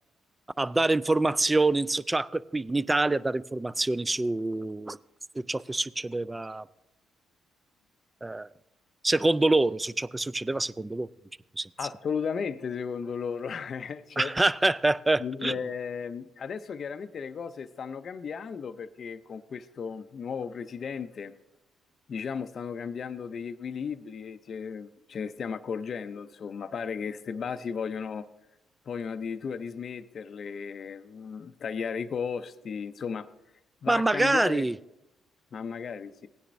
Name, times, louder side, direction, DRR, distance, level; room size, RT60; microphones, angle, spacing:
voice 1, 0.6-5.0 5.4-6.7 8.2-8.5 9.0-11.1 11.6-11.7 14.2-15.6 33.9-34.8, right 2 dB, 15° right, 17 dB, 0.3 m, -26 dB
voice 2, 11.8-14.3 15.2-21.3 22.1-28.3 28.9-33.3 33.8-34.7 35.5-36.3, left 6 dB, 50° left, 10 dB, 0.5 m, -35 dB
17.0 x 10.0 x 2.6 m, 0.88 s
cardioid pair, 90°, 0 cm